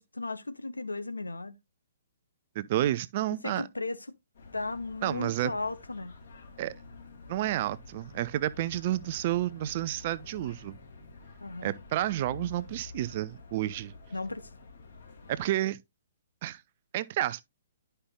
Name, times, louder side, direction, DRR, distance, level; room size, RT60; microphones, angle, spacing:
voice 1, 0.0-1.6 3.4-4.0 4.5-6.2 11.4-11.8 14.1-14.5, left 3 dB, 75° left, 0.8 m, -35 dB
voice 2, 2.6-3.7 5.0-5.5 6.6-6.7 7.3-10.7 11.6-13.9 15.3-15.8 16.4-16.6 16.9-17.4, right 14 dB, 40° right, 0.4 m, -30 dB
sound 1, 4.3-15.5, left 3 dB, 55° left, 2.2 m, -49 dB
11.0 x 5.5 x 2.2 m
figure-of-eight pair, 125°, 0 cm